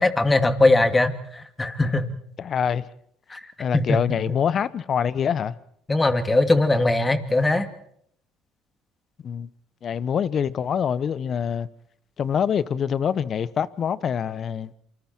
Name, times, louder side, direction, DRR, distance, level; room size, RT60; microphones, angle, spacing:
voice 1, 0.0-2.0 3.3-3.4 3.7-4.0 5.9-7.7, left 2 dB, 20° left, 2.6 m, -20 dB
voice 2, 2.4-2.8 3.6-5.5 9.2-9.5 9.8-11.7 12.2-14.7, left 7 dB, 45° left, 1.1 m, -25 dB
27.5 x 26.0 x 4.6 m
hypercardioid pair, 70°, 0 cm